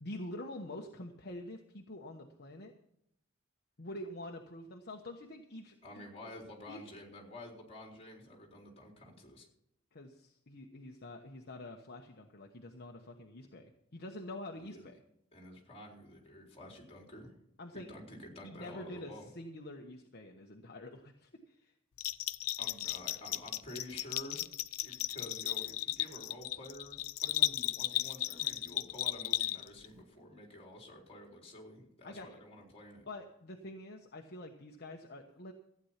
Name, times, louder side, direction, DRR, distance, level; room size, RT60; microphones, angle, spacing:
voice 1, 0.0-2.7 3.8-6.1 6.7-6.8 9.9-15.0 17.6-17.9 18.4-21.7 32.0-32.3 33.1-35.5, left 1 dB, 50° left, 2 dB, 1.1 m, -46 dB
voice 2, 5.8-9.5 14.6-14.9 15.3-17.3 17.7-19.3 22.6-24.5 24.8-33.1, left 1 dB, 30° left, 0 dB, 4.0 m, -50 dB
Bell, 22.0-29.9, left 15 dB, 90° left, 0.5 m, -35 dB
15.0 x 9.5 x 5.8 m, 0.77 s
head